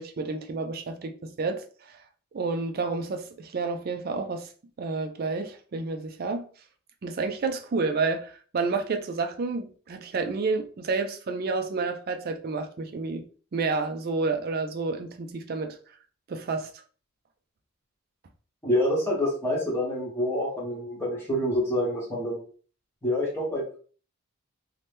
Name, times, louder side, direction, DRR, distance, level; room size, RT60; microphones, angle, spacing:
voice 1, 0.0-1.6 2.3-4.5 4.8-6.5 7.0-13.3 13.5-15.8 16.3-16.7, right 4 dB, 40° right, 0.3 m, -30 dB
voice 2, 18.6-22.4 23.0-23.8, left 1 dB, 10° left, 1.0 m, -27 dB
2.7 x 2.1 x 3.3 m
head